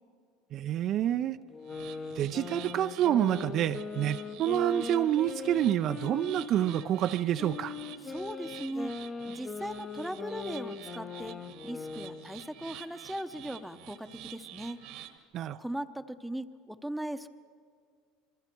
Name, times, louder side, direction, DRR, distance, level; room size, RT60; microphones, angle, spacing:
voice 1, 0.5-1.4 2.2-7.7 15.3-15.6, right 11 dB, 50° right, 10 dB, 0.5 m, -28 dB
sound 1, 1.5-6.9 7.4-12.3, left 4 dB, 25° left, 1.0 m, -40 dB
sound 2, 1.6-15.2, right 12 dB, 65° right, 1.3 m, -49 dB
voice 2, 8.0-8.9 9.2-11.4 11.6-14.8 15.6-17.3, right 1 dB, ahead, 8 dB, 0.9 m, -38 dB
27.5 x 23.0 x 4.6 m, 2.1 s
supercardioid pair, 105°, 0 cm